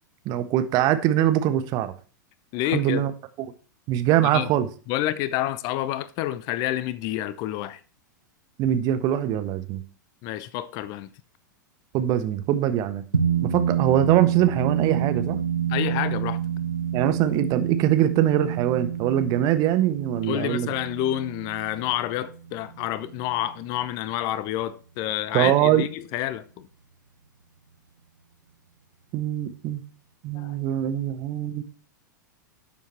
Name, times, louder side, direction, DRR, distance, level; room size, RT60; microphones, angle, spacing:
voice 1, 0.2-1.9 2.7-3.1 3.9-4.7 8.6-9.8 11.9-13.0 13.4-15.4 16.9-20.7 25.3-25.8 29.1-29.8 30.2-31.6, right 11 dB, 35° right, 1.2 m, -23 dB
voice 2, 2.5-3.0 4.3-4.5 4.9-7.8 10.2-11.1 15.7-16.4 20.2-26.7 30.3-30.6, left 13 dB, 40° left, 0.8 m, -28 dB
sound 1, 13.1-23.8, right 8 dB, 80° right, 0.8 m, -28 dB
12.0 x 7.3 x 4.4 m
figure-of-eight pair, 95°, 10 cm